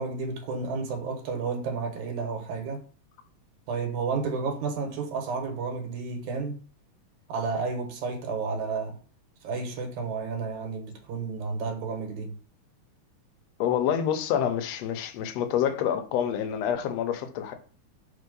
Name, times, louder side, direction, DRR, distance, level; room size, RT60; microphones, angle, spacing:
voice 1, 0.0-2.8 3.7-6.6 7.3-9.0 9.4-12.4, right 4 dB, 85° right, 2.6 m, -31 dB
voice 2, 13.6-17.5, left 9 dB, 70° left, 1.8 m, -27 dB
4.5 x 4.0 x 5.3 m
omnidirectional pair, 3.3 m